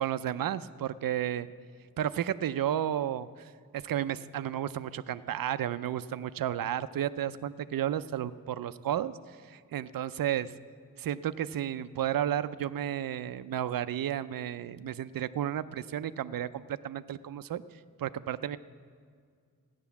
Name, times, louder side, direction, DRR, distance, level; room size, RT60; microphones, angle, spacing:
voice 1, 0.0-1.5 2.0-10.5 11.0-17.6 18.0-18.6, right 10 dB, 75° right, 14 dB, 0.5 m, -32 dB
15.0 x 10.0 x 7.0 m, 2.1 s
wide cardioid pair, 165°, 35 cm